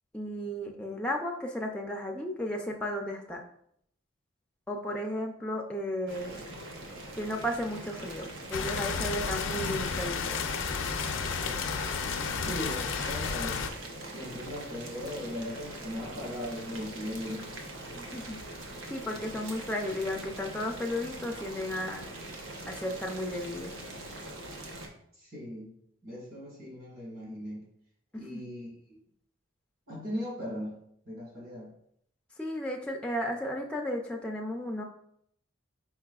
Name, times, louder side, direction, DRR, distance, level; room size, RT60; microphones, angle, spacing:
voice 1, 0.1-3.4 4.7-6.4 7.1-10.4 18.0-18.4 18.9-22.1 22.7-23.7 28.1-28.4 32.4-34.8, left 1 dB, 5° left, 0 dB, 0.3 m, -34 dB
Boiling, 6.1-24.9, right 1 dB, 85° right, 0.7 m, -43 dB
sound 1, 8.5-13.7, left 5 dB, 70° left, 0.4 m, -32 dB
voice 2, 12.4-13.6 14.1-17.5 25.2-25.7 26.0-27.6 28.1-28.7 29.9-30.8 31.0-31.7, left 1 dB, 45° right, -2 dB, 1.7 m, -38 dB
4.7 x 4.0 x 2.3 m, 0.69 s
head